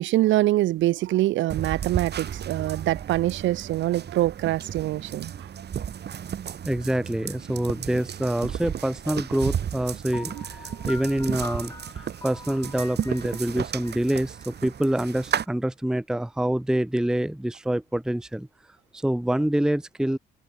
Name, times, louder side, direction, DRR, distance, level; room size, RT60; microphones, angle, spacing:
voice 1, 0.0-5.5, right 15 dB, 75° right, 0.5 m, -24 dB
sound 1, 1.5-15.4, right 9 dB, 55° right, 3.3 m, -34 dB
voice 2, 6.6-18.5 18.9-20.2, right 1 dB, 5° right, 0.7 m, -26 dB
Piano, 10.1-15.0, left 2 dB, 20° left, 3.9 m, -43 dB
cardioid pair, 90°, 20 cm